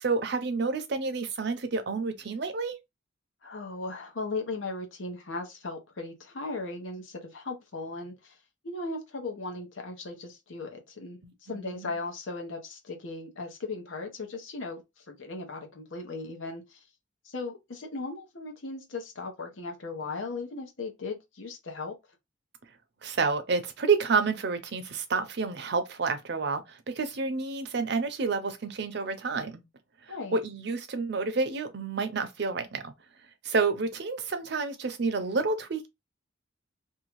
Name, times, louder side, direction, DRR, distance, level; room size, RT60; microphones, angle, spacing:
voice 1, 0.0-2.7 11.2-11.9 23.0-29.6 30.1-32.9 33.4-35.9, right 4 dB, 60° right, 0.6 m, -29 dB
voice 2, 3.4-8.4 8.6-16.8 17.2-21.9 30.1-30.4, left 3 dB, 90° left, 0.9 m, -37 dB
2.7 x 2.3 x 3.0 m
head